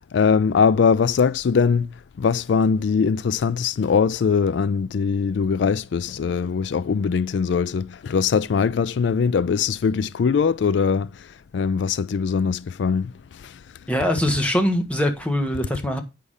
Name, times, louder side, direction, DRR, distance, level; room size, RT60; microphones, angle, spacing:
voice 1, 0.1-1.9 2.2-11.1 11.5-13.1 13.4-13.5, left 6 dB, 70° left, 0.3 m, -21 dB
voice 2, 13.9-16.0, equal, 5° left, 1.3 m, -22 dB
8.2 x 5.6 x 4.9 m
head